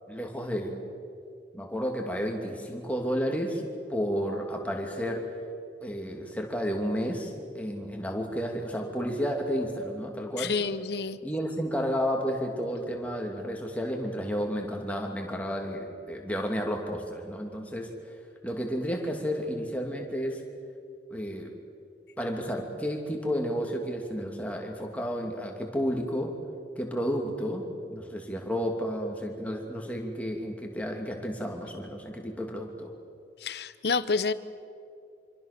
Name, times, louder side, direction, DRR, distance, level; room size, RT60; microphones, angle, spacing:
voice 1, 0.1-0.8 1.5-3.6 3.9-5.3 5.8-10.5 11.2-17.9 18.4-20.4 21.1-21.5 22.2-26.3 26.8-32.9, equal, 10° left, 1 dB, 2.8 m, -31 dB
voice 2, 10.4-11.2 33.4-34.3, left 4 dB, 70° left, 14 dB, 0.9 m, -28 dB
26.0 x 25.5 x 6.9 m, 2.4 s
head